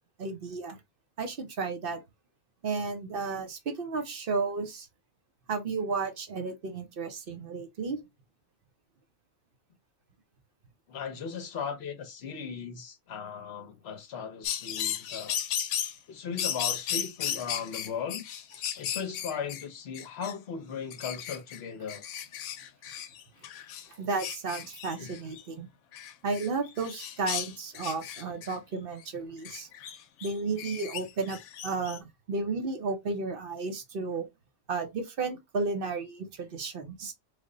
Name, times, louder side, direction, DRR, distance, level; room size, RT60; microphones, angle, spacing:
voice 1, 0.2-0.8 1.2-2.0 2.6-4.9 5.5-8.0 23.9-25.7 26.2-29.7 30.2-31.4 31.6-34.3 34.7-37.1, right 4 dB, 50° right, 0.8 m, -33 dB
voice 2, 10.9-15.4 16.1-18.2 18.8-22.0 25.0-25.1, left 6 dB, 55° left, 0.9 m, -37 dB
sound 1, 14.4-16.0 16.4-19.6 19.9-20.3 20.9-21.6 21.9-23.9 24.2-25.4 25.9-28.6 29.4-32.0, left 9 dB, 90° left, 1.0 m, -35 dB
3.3 x 2.1 x 3.6 m
omnidirectional pair, 1.4 m